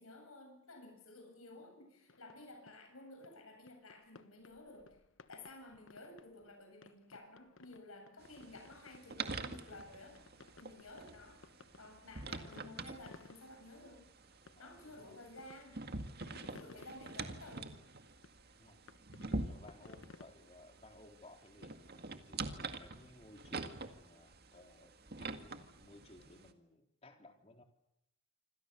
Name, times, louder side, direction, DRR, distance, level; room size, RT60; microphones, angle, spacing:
voice 1, 0.0-10.2 10.6-11.5 11.8-14.1 14.6-15.8 16.4-17.8, left 2 dB, 85° left, 4 dB, 7.9 m, -54 dB
sound 1, 2.1-20.3, left 3 dB, 65° left, 1.2 m, -60 dB
sound 2, 8.2-26.5, right 3 dB, 50° right, 2.0 m, -46 dB
voice 2, 14.6-15.2 16.4-16.7 18.6-18.8 19.2-27.6, left 2 dB, 30° left, 4 dB, 3.7 m, -60 dB
27.0 x 27.0 x 6.9 m, 0.81 s
head